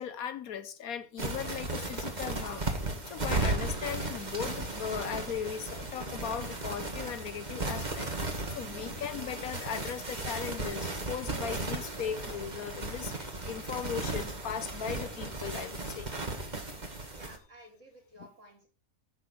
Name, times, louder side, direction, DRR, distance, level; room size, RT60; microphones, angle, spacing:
voice 1, 0.0-2.7 3.0-16.1 16.5-16.7 18.2-18.3, left 8 dB, 70° left, 1.3 m, -38 dB
sound 1, 1.2-17.4, right 2 dB, 30° right, 1.9 m, -35 dB
voice 2, 17.1-18.7, right 1 dB, 50° right, 5.1 m, -54 dB
10.5 x 6.8 x 6.8 m
omnidirectional pair, 1.6 m